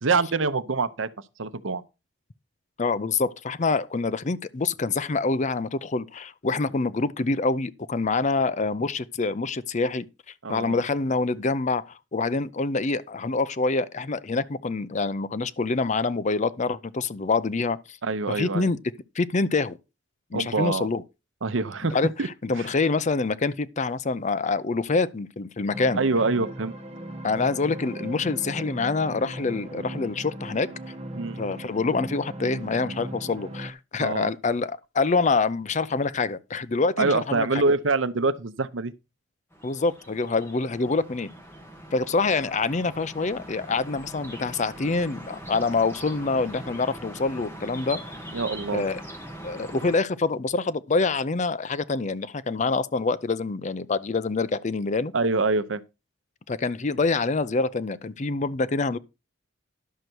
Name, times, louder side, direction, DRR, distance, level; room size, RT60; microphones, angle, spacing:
voice 1, 0.0-1.1 1.4-1.8 10.4-10.8 18.0-18.7 20.3-20.9 21.4-22.7 26.0-26.7 31.1-31.4 34.0-34.3 37.0-38.9 48.3-48.8 55.1-55.8, right 3 dB, 75° right, 0.8 m, -25 dB
voice 2, 2.8-10.1 10.5-18.0 18.3-18.8 19.2-19.8 20.3-21.0 21.9-22.1 22.4-26.0 27.2-30.7 31.4-37.6 39.6-41.3 41.9-48.0 48.7-49.0 49.4-55.1 56.5-59.0, left 3 dB, 40° left, 0.6 m, -26 dB
sound 1, 25.7-33.7, right 1 dB, 35° right, 1.3 m, -38 dB
sound 2, 39.5-50.0, right 1 dB, 10° left, 2.1 m, -41 dB
11.0 x 6.6 x 4.5 m
head